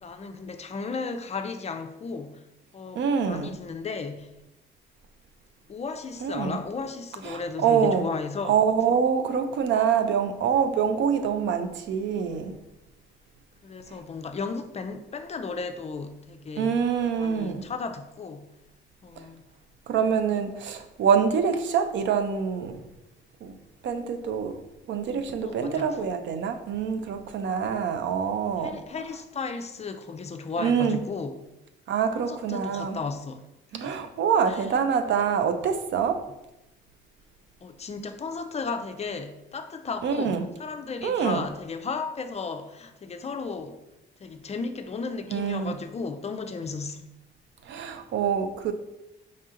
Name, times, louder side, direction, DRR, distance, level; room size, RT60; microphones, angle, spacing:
voice 1, 0.0-2.4 2.7-4.3 5.7-8.6 13.6-16.8 17.2-18.5 19.0-19.4 25.4-25.9 28.6-31.4 32.1-33.4 33.7-34.0 34.5-34.7 37.6-43.8 44.2-47.1, left 4 dB, 35° left, 0.4 m, -35 dB
voice 2, 3.0-3.5 6.2-6.6 7.3-8.0 8.5-12.5 16.6-17.7 19.9-22.8 23.4-23.5 23.8-24.6 24.9-28.8 30.6-31.0 31.9-33.0 33.7-36.2 40.0-40.4 41.0-41.4 45.3-45.7 47.7-48.7, right 7 dB, 70° right, 0.5 m, -25 dB
5.3 x 2.7 x 3.7 m
cardioid pair, 90°, 20 cm